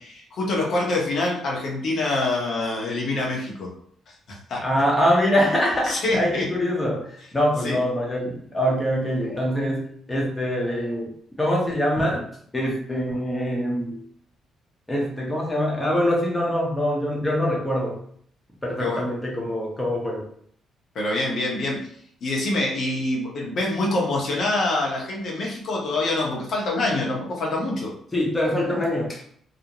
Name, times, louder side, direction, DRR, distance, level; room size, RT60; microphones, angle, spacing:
voice 1, 0.0-3.7 4.3-4.6 5.8-6.5 7.6-7.8 18.8-19.0 20.9-21.9 22.2-27.9, left 2 dB, 60° left, -2 dB, 0.9 m, -25 dB
voice 2, 4.6-11.1 11.4-12.2 12.5-14.0 14.9-18.0 18.6-20.2 28.1-29.2, equal, 15° left, -2 dB, 0.7 m, -24 dB
2.5 x 2.0 x 2.9 m, 0.63 s
cardioid pair, 90°, 0 cm